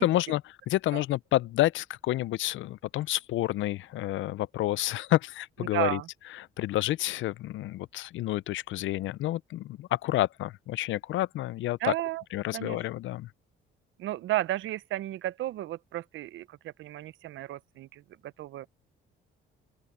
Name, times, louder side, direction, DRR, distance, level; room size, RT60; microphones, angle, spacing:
voice 1, 0.0-6.0 6.3-11.9 12.3-13.3, left 15 dB, 75° left, 0.5 m, -29 dB
voice 2, 5.7-6.1 11.8-12.2 12.5-12.8 14.0-18.7, right 15 dB, 75° right, 0.7 m, -33 dB
open air
cardioid pair, 90°, 20 cm